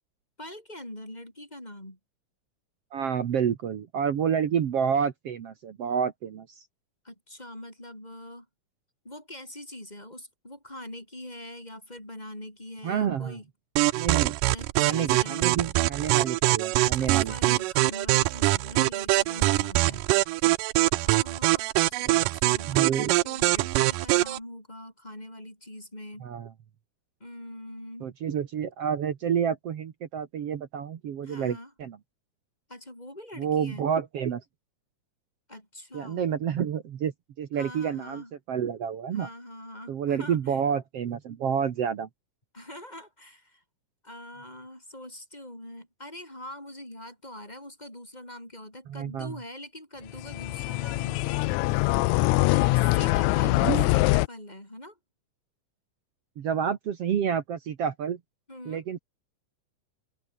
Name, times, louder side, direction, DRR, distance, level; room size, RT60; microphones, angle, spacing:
voice 1, 0.4-2.0 7.0-8.5 9.0-13.5 14.4-15.5 16.8-20.0 20.9-26.3 27.2-28.1 31.2-31.7 32.7-33.9 35.5-36.3 37.5-38.3 39.1-40.6 42.5-43.6 44.0-52.1 52.4-55.0 58.5-58.8, left 1 dB, 10° left, 8.1 m, -43 dB
voice 2, 2.9-6.6 12.8-13.4 13.9-14.4 14.8-17.6 19.9-20.0 22.1-22.2 22.6-23.1 26.2-26.5 28.0-32.0 33.4-34.4 35.9-37.1 37.4-39.3 39.9-42.1 48.9-49.3 53.6-53.9 56.4-58.2 58.7-59.0, right 8 dB, 55° right, 2.2 m, -29 dB
sound 1, 13.8-24.4, right 19 dB, 85° right, 2.3 m, -23 dB
sound 2, 50.1-54.3, left 21 dB, 80° left, 1.7 m, -23 dB
open air
omnidirectional pair, 3.7 m